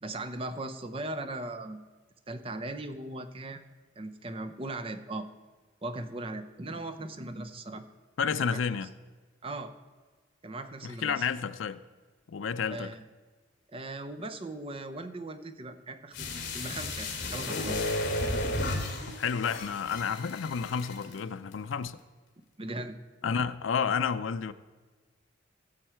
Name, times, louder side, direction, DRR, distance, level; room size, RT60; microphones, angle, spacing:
voice 1, 0.0-1.8 2.3-3.7 4.0-5.3 5.8-7.9 8.4-8.6 9.4-9.7 10.4-11.3 12.7-13.0 13.7-17.8 22.6-22.9, right 2 dB, 30° right, 8 dB, 0.6 m, -38 dB
voice 2, 8.2-8.9 10.8-11.8 12.3-12.9 19.2-22.0 23.2-24.5, left 6 dB, 80° left, 12 dB, 0.5 m, -30 dB
sound 1, 16.1-21.2 21.5-21.6, left 1 dB, 60° left, 2.4 m, -33 dB
16.5 x 7.2 x 4.5 m, 1.4 s
head